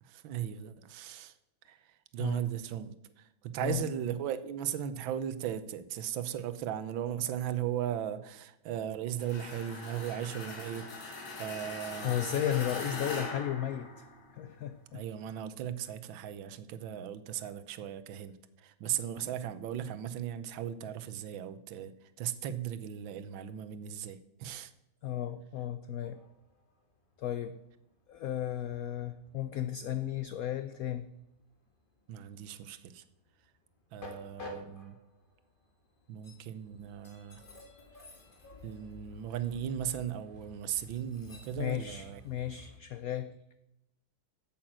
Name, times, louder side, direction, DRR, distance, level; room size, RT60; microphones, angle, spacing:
voice 1, 0.0-1.4 1.6-12.2 14.9-24.7 32.1-33.0 33.9-35.0 36.1-37.4 38.6-42.2, right 10 dB, 85° right, 12 dB, 1.5 m, -37 dB
sound 1, 9.2-14.4, left 3 dB, 60° left, 2.4 m, -41 dB
voice 2, 12.0-14.1 14.3-15.0 25.0-26.2 27.2-27.6 28.1-31.0 41.6-43.3, left 11 dB, 85° left, 12 dB, 0.7 m, -34 dB
Train, 26.1-42.8, left 2 dB, 25° left, 1.8 m, -53 dB
8.6 x 7.5 x 7.5 m, 0.86 s
omnidirectional pair, 2.1 m